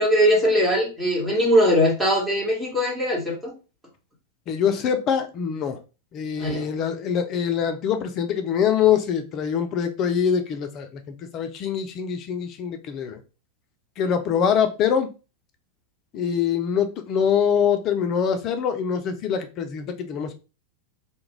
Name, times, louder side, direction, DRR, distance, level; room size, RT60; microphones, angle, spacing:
voice 1, 0.0-3.5 6.4-6.7, equal, 10° right, -4 dB, 1.1 m, -21 dB
voice 2, 4.5-5.8 6.1-10.9 11.3-13.2 14.0-15.1 16.1-20.3, left 8 dB, 35° left, 7 dB, 0.4 m, -24 dB
2.3 x 2.1 x 3.0 m, 0.31 s
figure-of-eight pair, 90°, 0 cm